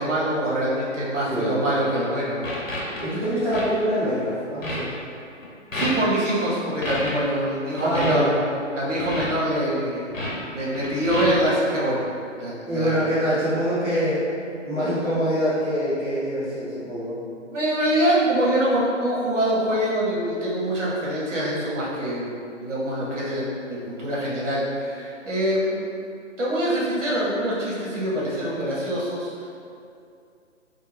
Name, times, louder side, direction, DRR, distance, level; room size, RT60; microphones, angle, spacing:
voice 1, 0.0-2.5 5.7-8.3 8.8-12.1 12.4-13.4 17.3-25.8 26.4-29.5, right 1 dB, 65° right, -6 dB, 0.9 m, -25 dB
sound 1, 1.8-2.1 2.4-3.0 3.5-3.6 4.0-4.3 4.6-4.8 5.4-5.5 5.7-6.1 6.8-7.1 7.8-8.1 9.0-9.3 10.1-10.3 10.6-11.4, left 1 dB, 80° left, 0.8 m, -30 dB
voice 2, 3.0-4.9 7.8-8.4 12.7-17.2, equal, 10° right, -22 dB, 0.9 m, -25 dB
2.6 x 2.1 x 3.1 m, 2.5 s
figure-of-eight pair, 140°, 39 cm